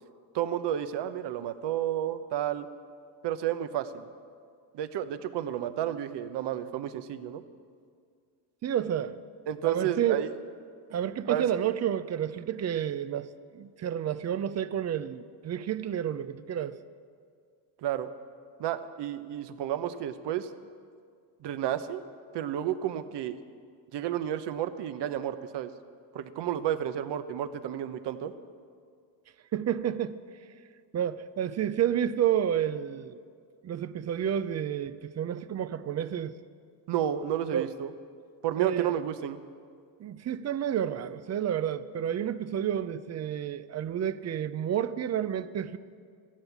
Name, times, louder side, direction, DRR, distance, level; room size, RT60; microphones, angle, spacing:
voice 1, 0.3-2.7 3.2-4.1 4.7-7.4 9.5-10.4 11.3-11.4 17.8-18.1 18.6-20.5 21.4-22.0 22.3-23.4 23.9-25.7 26.1-28.3 36.9-37.9 38.4-39.4, right 11 dB, 60° right, 1.0 m, -31 dB
voice 2, 8.6-9.2 9.6-10.2 10.9-13.3 13.5-16.8 29.5-30.2 30.9-33.2 33.6-36.3 37.5-37.7 38.6-39.0 40.0-45.8, right 10 dB, 35° right, 0.6 m, -30 dB
15.0 x 12.0 x 7.3 m
cardioid pair, 115°, 48 cm